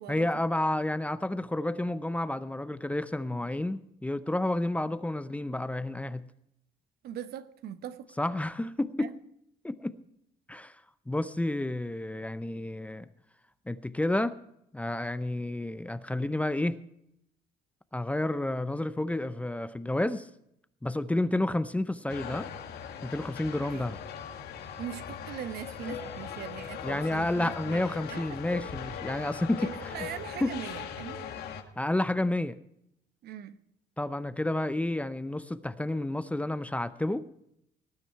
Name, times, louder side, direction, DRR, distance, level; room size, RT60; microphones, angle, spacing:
voice 1, 0.1-6.2 8.2-9.1 9.6-10.0 10.5-10.8 11.1-13.1 13.7-14.4 14.7-16.8 17.9-20.3 20.8-22.5 23.0-24.0 26.8-30.1 30.4-30.5 31.8-32.6 34.0-37.3, left 1 dB, 10° left, 0.6 m, -30 dB
voice 2, 7.0-8.1 9.0-9.1 23.7-23.8 24.8-28.6 29.6-31.2 33.2-33.6, right 10 dB, 70° right, 1.0 m, -41 dB
sound 1, 22.1-31.6, left 7 dB, 70° left, 1.6 m, -40 dB
19.0 x 9.4 x 4.5 m
cardioid pair, 110°, 17 cm